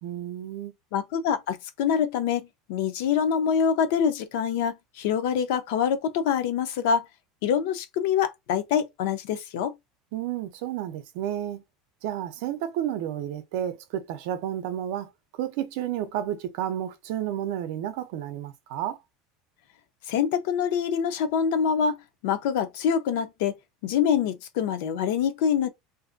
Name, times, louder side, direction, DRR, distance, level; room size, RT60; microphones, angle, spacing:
voice 1, 0.0-0.7 10.1-11.6 12.0-19.0, right 11 dB, 60° right, 0.5 m, -31 dB
voice 2, 0.9-7.1 7.4-9.7 20.1-22.0 22.2-23.6 23.8-25.7, left 7 dB, 65° left, 0.5 m, -25 dB
2.6 x 2.5 x 2.4 m
cardioid pair, 175°, 0 cm